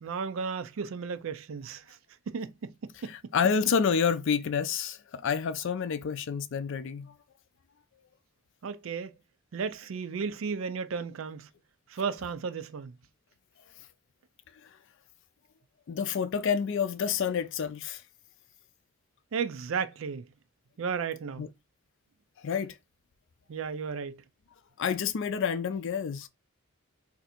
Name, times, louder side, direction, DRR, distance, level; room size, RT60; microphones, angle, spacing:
voice 1, 0.0-2.0 2.3-3.1 8.6-9.1 9.5-11.5 11.9-12.9 19.3-20.2 20.8-21.4 23.5-24.2, right 5 dB, 70° right, 0.4 m, -34 dB
voice 2, 3.0-7.1 14.6-14.7 15.9-18.0 21.4-21.5 22.4-22.8 24.8-26.3, left 6 dB, 65° left, 0.4 m, -29 dB
2.7 x 2.4 x 4.2 m
head